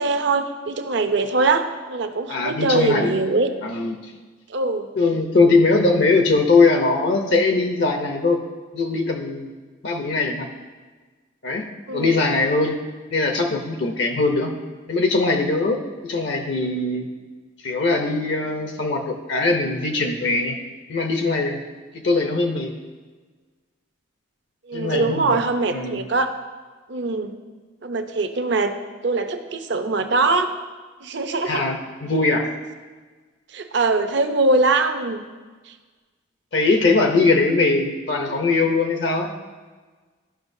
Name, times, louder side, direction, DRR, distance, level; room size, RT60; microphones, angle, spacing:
voice 1, 0.0-3.5 4.5-4.9 5.4-5.6 11.9-12.2 24.7-26.3 26.9-27.3 27.8-28.7 29.0-30.5 31.0-31.6 33.5-35.2, right 3 dB, 60° right, 7 dB, 0.6 m, -22 dB
voice 2, 2.3-3.2 3.6-4.0 5.0-8.4 8.7-9.5 9.8-10.5 11.4-11.6 11.9-12.8 13.1-14.5 14.9-17.1 17.6-20.6 20.9-21.6 21.9-22.7 24.7-25.4 25.7-26.0 31.4-32.4 36.5-39.3, left 3 dB, 60° left, 4 dB, 0.6 m, -21 dB
12.5 x 5.8 x 2.6 m, 1.4 s
head